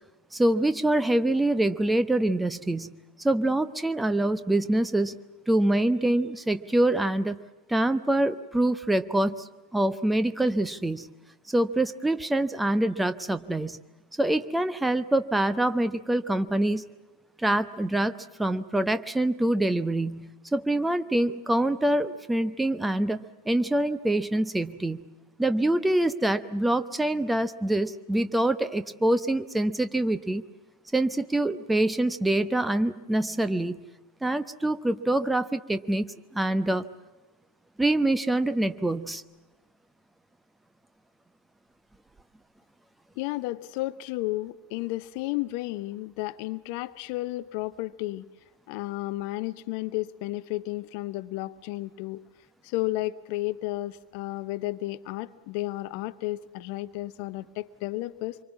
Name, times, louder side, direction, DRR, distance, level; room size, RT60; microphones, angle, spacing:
voice 1, 0.3-2.9 3.2-5.1 5.5-7.4 7.7-11.1 11.5-13.8 14.2-16.8 17.4-25.0 25.4-30.4 30.9-33.8 34.2-36.8 37.8-39.2, right 1 dB, 5° right, 12 dB, 1.0 m, -25 dB
voice 2, 43.2-48.3 48.7-52.2 52.6-58.4, left 18 dB, 45° left, 16 dB, 0.7 m, -32 dB
26.0 x 24.5 x 7.3 m, 1.1 s
figure-of-eight pair, 90°, 0 cm